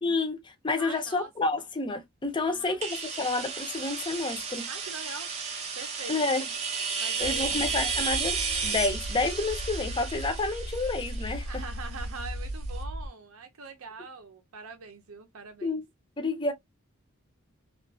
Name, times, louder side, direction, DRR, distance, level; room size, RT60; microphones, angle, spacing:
voice 1, 0.0-4.7 6.1-6.4 7.2-8.4 8.6-11.5 15.6-15.8 16.2-16.5, left 3 dB, 20° left, 0.4 m, -29 dB
voice 2, 0.8-1.3 2.4-2.8 4.7-5.3 5.7-6.2 7.0-7.6 11.5-15.8, right 5 dB, 75° right, 0.6 m, -42 dB
sound 1, 2.8-12.4, right 5 dB, 30° right, 0.5 m, -33 dB
sound 2, 7.2-13.1, equal, 70° left, 0.6 m, -37 dB
2.4 x 2.3 x 2.3 m
head